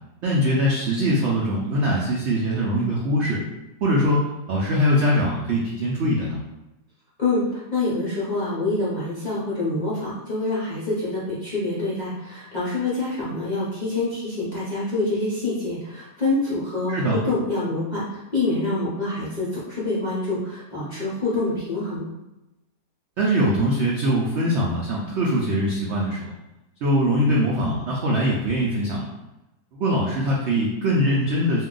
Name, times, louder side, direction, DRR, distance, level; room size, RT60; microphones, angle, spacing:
voice 1, 0.2-3.4 3.8-6.4 16.9-17.2 23.2-26.3 26.8-29.1 29.7-31.7, equal, 75° right, -3 dB, 0.6 m, -22 dB
voice 2, 7.2-22.1, left 2 dB, 45° left, -9 dB, 0.5 m, -26 dB
2.7 x 2.3 x 3.7 m, 0.96 s
omnidirectional pair, 1.8 m